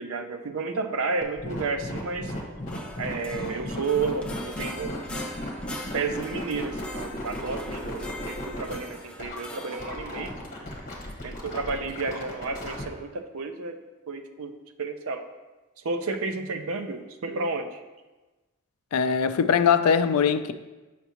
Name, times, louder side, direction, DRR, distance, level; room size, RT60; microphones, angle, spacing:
voice 1, 0.0-2.3 3.0-5.3 5.9-10.3 11.2-13.8 14.1-15.2 15.8-17.8, right 4 dB, 75° right, 0.5 m, -31 dB
sound 1, 1.2-12.8, left 1 dB, 35° left, 1.2 m, -36 dB
sound 2, 2.7-9.9, left 1 dB, 5° left, 0.4 m, -42 dB
voice 2, 18.9-20.5, left 6 dB, 90° left, 0.4 m, -21 dB
8.0 x 5.8 x 2.9 m
head